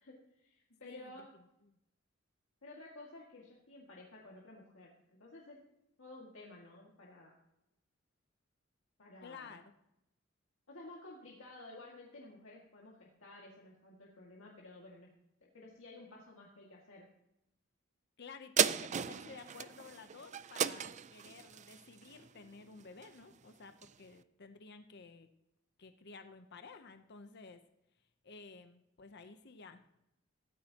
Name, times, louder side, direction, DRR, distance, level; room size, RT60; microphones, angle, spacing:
voice 1, 0.0-1.3 2.6-5.6 6.0-7.3 9.0-9.6 10.7-15.1 15.4-17.1, left 2 dB, 75° left, -3 dB, 2.1 m, -53 dB
voice 2, 9.2-9.7 18.2-25.3 25.8-27.6 28.2-29.9, left 4 dB, 55° left, 8 dB, 0.8 m, -53 dB
sound 1, 18.6-23.3 23.8-23.9, right 8 dB, 35° right, 0.4 m, -35 dB
16.0 x 13.0 x 2.9 m, 0.84 s
head